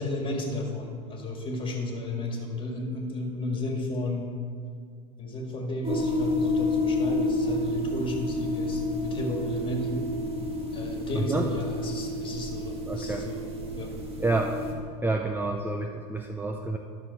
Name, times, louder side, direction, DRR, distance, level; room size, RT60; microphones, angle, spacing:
voice 1, 0.0-4.3 5.2-10.1 10.7-13.4 13.8-14.0, left 2 dB, 25° left, 1 dB, 2.0 m, -33 dB
sound 1, 5.8-14.7, left 1 dB, 30° right, 1.6 m, -30 dB
voice 2, 11.2-11.5 12.9-13.2 14.2-14.5 15.0-16.8, right 2 dB, 10° right, 4 dB, 0.5 m, -28 dB
12.0 x 6.3 x 4.2 m, 2.2 s
hypercardioid pair, 95°, 20 cm